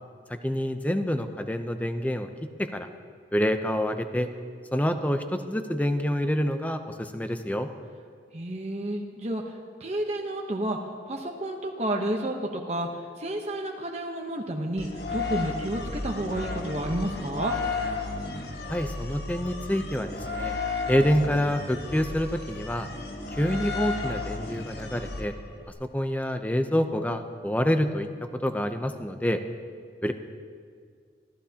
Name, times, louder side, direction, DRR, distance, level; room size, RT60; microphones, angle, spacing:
voice 1, 0.3-2.3 2.6-2.9 3.3-4.3 4.7-7.7 18.7-20.6 20.9-22.9 23.3-25.3 25.8-28.1 28.4-29.4 30.0-30.1, equal, 10° left, 7 dB, 0.6 m, -27 dB
voice 2, 8.3-10.8 11.1-17.6, right 1 dB, 35° right, 1 dB, 0.9 m, -31 dB
sound 1, 14.8-25.7, left 3 dB, 65° left, 1.4 m, -33 dB
25.0 x 15.0 x 2.9 m, 2.1 s
head